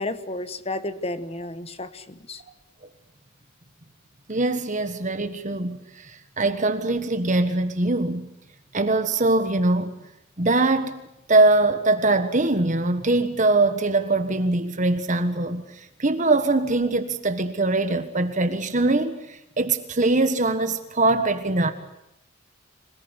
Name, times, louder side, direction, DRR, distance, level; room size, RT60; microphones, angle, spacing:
voice 1, 0.0-2.4, left 2 dB, 30° left, 1.3 m, -32 dB
voice 2, 4.3-8.3 8.7-9.9 10.4-11.0 11.3-21.7, right 2 dB, 35° right, 1.5 m, -22 dB
26.5 x 19.0 x 8.1 m
head